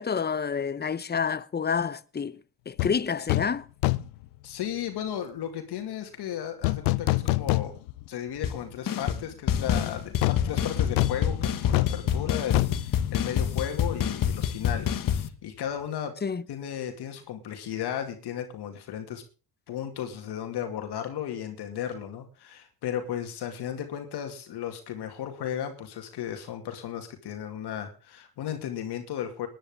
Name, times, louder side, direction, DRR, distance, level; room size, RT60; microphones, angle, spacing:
voice 1, 0.0-2.4 2.7-3.7 16.2-16.4, left 6 dB, 25° left, 0.9 m, -28 dB
sound 1, 2.8-3.0 3.3-3.6 3.8-4.2 6.6-8.1 8.4-8.5 10.2-13.9 14.1-14.3, left 21 dB, 90° left, 0.7 m, -27 dB
voice 2, 4.4-7.7 8.1-16.2 16.5-19.2 19.7-29.5, left 9 dB, 65° left, 2.4 m, -35 dB
sound 2, 8.4-8.6 8.9-9.2 9.5-15.3, left 9 dB, 50° left, 1.4 m, -27 dB
20.5 x 10.5 x 3.6 m
supercardioid pair, 75°, 42 cm